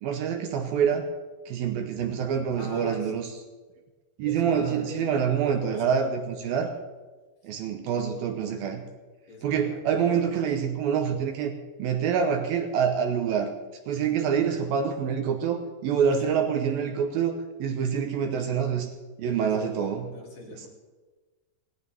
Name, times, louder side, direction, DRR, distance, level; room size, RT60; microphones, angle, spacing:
voice 1, 0.0-1.0 1.5-3.3 4.2-6.7 7.4-8.8 9.4-11.5 11.8-13.5 13.9-18.9 19.2-20.1, right 7 dB, 70° right, 5 dB, 2.6 m, -26 dB
voice 2, 2.5-3.3 4.2-6.3 9.3-9.8 19.4-20.7, left 2 dB, 55° left, -2 dB, 4.4 m, -43 dB
18.0 x 17.5 x 3.5 m, 1.3 s
omnidirectional pair, 4.7 m